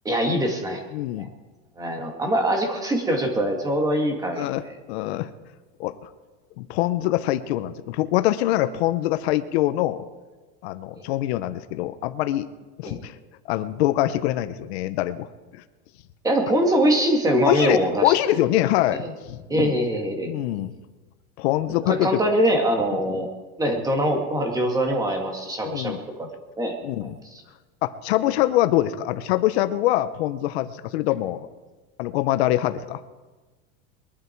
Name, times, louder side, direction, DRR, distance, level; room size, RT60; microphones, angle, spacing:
voice 1, 0.0-0.8 1.8-4.7 12.8-13.0 16.2-18.4 18.9-19.1 19.5-20.3 21.8-23.3 23.6-26.3 26.6-26.7 27.0-27.1, right 1 dB, 10° right, 3 dB, 2.2 m, -23 dB
voice 2, 0.9-1.3 4.4-5.3 5.8-6.1 6.6-10.0 10.6-12.5 12.8-13.1 13.5-15.3 15.5-15.6 17.4-19.7 20.3-20.7 21.4-22.2 25.6-26.0 26.8-27.2 27.8-31.5 32.0-33.0, left 14 dB, 70° left, 11 dB, 0.9 m, -24 dB
22.0 x 11.5 x 4.6 m, 1.2 s
supercardioid pair, 155°, 33 cm